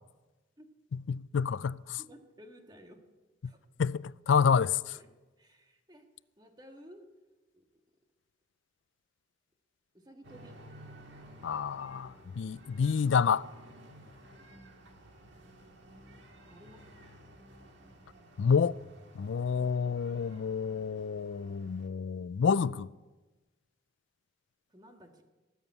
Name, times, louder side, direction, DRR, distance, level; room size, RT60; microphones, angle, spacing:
voice 1, 0.9-2.0 3.4-3.5 3.8-4.8 11.4-13.5 18.4-18.8 19.1-22.9, left 6 dB, 75° left, 0.4 m, -28 dB
voice 2, 2.0-3.0 3.4-3.6 4.3-4.4 4.9-5.1 5.4-6.1 6.4-7.0 7.5-7.6 9.9-10.6 16.5-16.9 24.7-25.2, equal, 20° right, 1.7 m, -54 dB
sound 1, 10.2-21.9, right 1 dB, 65° right, 1.9 m, -54 dB
19.0 x 7.1 x 9.6 m
head